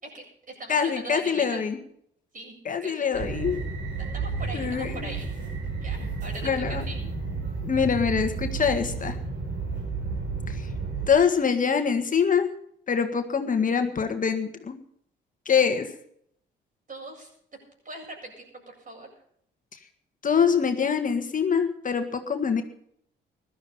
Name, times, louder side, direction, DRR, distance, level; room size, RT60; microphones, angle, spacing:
voice 1, 0.0-1.6 2.3-3.2 4.0-5.3 5.7-7.0 16.9-17.3 17.8-19.1, right 2 dB, 45° right, 1 dB, 7.8 m, -40 dB
voice 2, 0.7-1.8 2.7-3.6 4.5-5.1 6.4-6.8 7.6-9.2 10.5-10.7 11.1-12.5 12.9-14.8 15.5-15.9 20.2-22.6, left 6 dB, 45° left, 6 dB, 1.7 m, -24 dB
sound 1, 3.1-11.1, right 4 dB, 75° right, 5.7 m, -32 dB
15.5 x 12.5 x 5.4 m, 0.67 s
cardioid pair, 75°, 19 cm